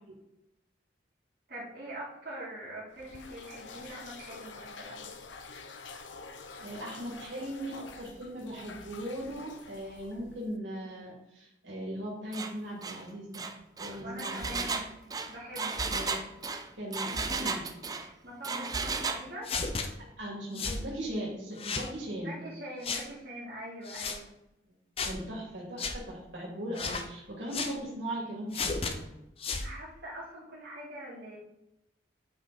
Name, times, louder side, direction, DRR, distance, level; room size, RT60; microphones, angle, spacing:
voice 1, 1.5-5.0 14.0-14.9 15.3-15.9 18.2-19.5 22.2-24.3 29.6-31.4, right 1 dB, 55° right, -7 dB, 2.6 m, -43 dB
sound 1, 2.9-10.6, left 4 dB, 90° left, 0.8 m, -47 dB
voice 2, 6.6-13.5 13.8-14.6 15.9-16.2 16.7-17.6 20.2-22.4 25.0-29.1, right 1 dB, 85° right, -4 dB, 2.8 m, -38 dB
Engine, 12.3-12.5 12.8-13.0 13.3-18.1 18.4-19.2, right 4 dB, 20° right, 0.5 m, -34 dB
sound 2, 19.4-19.9 20.6-20.8 21.6-21.9 22.8-23.1 23.9-24.2 25.0-25.2 25.8-26.0 26.7-27.1 27.5-27.8 28.5-28.9 29.4-29.7, left 4 dB, 30° left, 0.6 m, -33 dB
8.7 x 5.0 x 4.1 m, 0.89 s
head